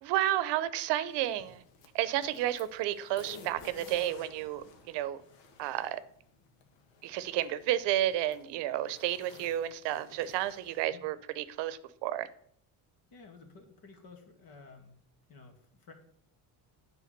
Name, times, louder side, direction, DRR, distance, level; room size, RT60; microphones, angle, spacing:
voice 1, 0.0-1.6 1.9-5.2 5.6-6.0 7.0-12.3, right 13 dB, 75° right, 0.8 m, -31 dB
sound 1, 1.1-10.9, left 4 dB, 90° left, 1.7 m, -55 dB
voice 2, 10.7-11.1 13.1-15.0 15.3-15.9, left 4 dB, 55° left, 2.2 m, -53 dB
9.3 x 4.9 x 6.6 m
cardioid pair, 130°, 43 cm